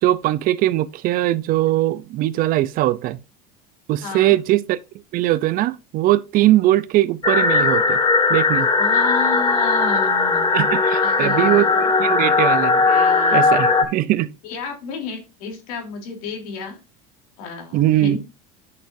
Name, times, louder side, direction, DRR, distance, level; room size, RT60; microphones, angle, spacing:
voice 1, 0.0-3.2 3.9-4.8 5.1-8.0 8.3-8.7 10.5-12.9 13.3-14.3 17.7-18.2, right 15 dB, 50° right, 0.6 m, -20 dB
voice 2, 4.0-4.4 8.8-10.5 11.0-12.1 12.8-13.7 14.4-16.8 17.4-18.2, left 5 dB, 85° left, 3.3 m, -31 dB
sound 1, 7.2-13.8, left 4 dB, 20° left, 1.3 m, -18 dB
10.5 x 6.4 x 2.6 m
supercardioid pair, 120°, 18 cm